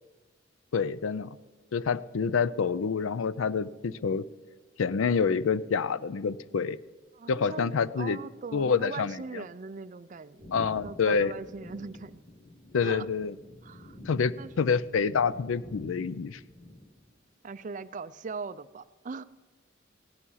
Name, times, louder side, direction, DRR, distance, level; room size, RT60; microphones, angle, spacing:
voice 1, 0.7-1.4 1.7-4.2 4.8-6.8 7.3-8.2 8.5-9.4 10.5-11.3 12.7-13.3 14.1-16.4, left 5 dB, 90° left, 18 dB, 0.5 m, -27 dB
voice 2, 7.1-10.5 10.8-12.2 12.8-13.1 13.6-14.0 14.4-14.5 17.4-19.2, right 4 dB, 40° right, 15 dB, 0.4 m, -40 dB
sound 1, 10.4-17.2, left 1 dB, 30° left, 1.5 m, -48 dB
16.5 x 11.0 x 5.6 m, 1.3 s
head